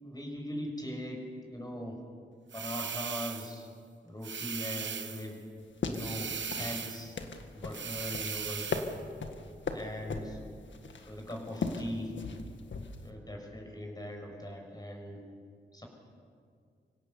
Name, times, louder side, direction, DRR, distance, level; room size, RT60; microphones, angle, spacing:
voice 1, 0.0-2.0 2.5-3.7 4.0-5.4 5.8-7.2 7.5-8.7 9.7-10.4 11.0-12.2 13.0-15.2 15.7-15.8, left 1 dB, 20° left, 2 dB, 6.5 m, -40 dB
sound 1, 2.5-3.6 4.2-5.3 5.9-7.1 7.7-9.0, right 6 dB, 70° right, 1.3 m, -38 dB
sound 2, 5.6-13.1, left 4 dB, 70° left, 1.8 m, -38 dB
25.5 x 16.5 x 7.1 m, 2.2 s
cardioid pair, 55°, 20 cm